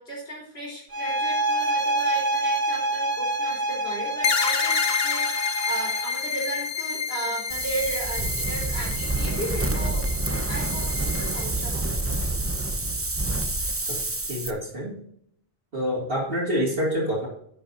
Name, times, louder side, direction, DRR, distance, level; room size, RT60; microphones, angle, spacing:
voice 1, 0.0-10.1 10.5-12.1, right 1 dB, 80° left, -5 dB, 4.1 m, -35 dB
sound 1, 0.9-6.2, right 2 dB, 45° right, 2.2 m, -27 dB
sound 2, 4.2-11.5, left 5 dB, 50° left, 0.9 m, -29 dB
Wind, 7.5-14.5, right 2 dB, 15° right, 0.7 m, -27 dB
voice 2, 14.3-15.0 15.7-17.3, equal, 65° right, -6 dB, 2.6 m, -26 dB
10.5 x 8.5 x 2.6 m, 0.67 s
omnidirectional pair, 1.1 m